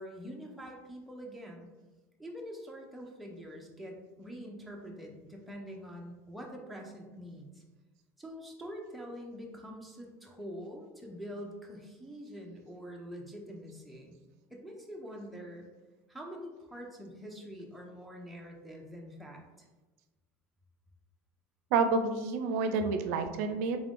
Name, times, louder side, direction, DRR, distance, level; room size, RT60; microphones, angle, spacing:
voice 1, 0.0-1.7 2.2-7.6 8.2-14.2 14.5-15.7 16.1-19.4, equal, ahead, -1 dB, 0.4 m, -45 dB
voice 2, 21.7-23.8, right 4 dB, 85° right, 6 dB, 0.4 m, -29 dB
3.6 x 2.5 x 3.4 m, 1.2 s
cardioid pair, 175°, 8 cm